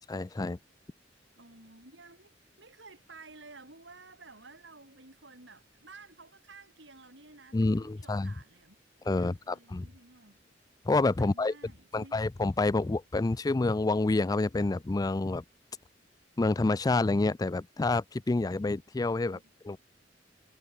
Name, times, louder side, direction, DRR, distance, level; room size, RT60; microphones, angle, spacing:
voice 1, 0.1-0.6 7.5-8.3 9.1-9.9 10.9-11.5 11.9-15.4 16.4-19.4 19.6-19.8, left 2 dB, 20° left, 0.4 m, -28 dB
voice 2, 1.4-8.8 9.1-10.5 11.2-12.2 19.2-19.5, right 3 dB, 80° right, 5.5 m, -53 dB
head